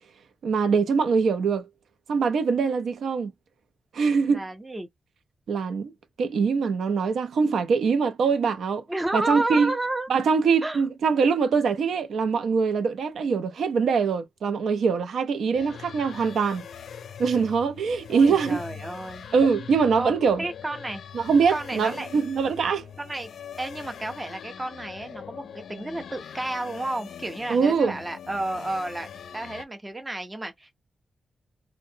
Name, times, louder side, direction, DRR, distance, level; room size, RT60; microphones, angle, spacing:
voice 1, 0.4-1.7 2.1-3.3 3.9-4.4 5.5-5.9 6.2-8.8 9.1-9.7 10.1-16.6 17.2-18.6 19.3-20.4 21.1-22.9 27.5-28.0, right 5 dB, 75° right, 0.4 m, -23 dB
voice 2, 4.3-4.9 8.9-10.1 10.6-10.8 18.1-19.3 20.0-21.0 21.5-22.1 23.0-23.3 23.6-29.1 29.3-30.7, right 2 dB, 15° right, 0.5 m, -31 dB
sound 1, 15.5-29.6, left 8 dB, 75° left, 0.3 m, -42 dB
2.6 x 2.1 x 2.6 m
wide cardioid pair, 170°, 0 cm